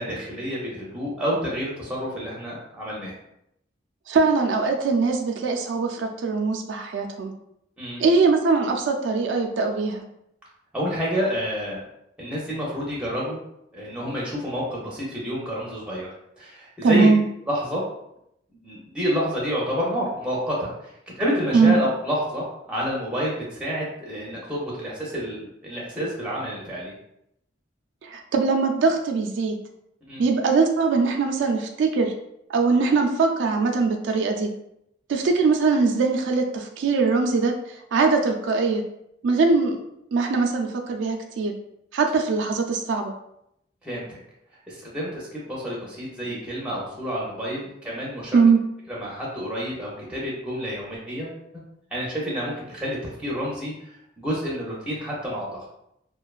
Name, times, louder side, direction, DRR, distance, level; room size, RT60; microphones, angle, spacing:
voice 1, 0.0-3.1 7.8-8.0 10.7-11.8 12.2-13.4 13.7-16.1 16.4-17.1 17.5-17.8 18.6-20.9 21.2-26.9 30.1-30.2 43.8-44.1 44.7-48.4 48.9-51.4 51.9-53.7 54.2-55.6, equal, 5° right, -5 dB, 0.5 m, -29 dB
voice 2, 4.1-7.3 8.0-10.0 16.8-17.2 21.5-21.8 28.0-29.6 30.2-32.1 32.5-34.5 35.1-37.5 37.9-38.8 39.2-39.8 40.1-41.5 41.9-43.1 48.3-48.6, right 4 dB, 75° right, 3 dB, 0.3 m, -21 dB
2.5 x 2.2 x 2.3 m, 0.78 s
head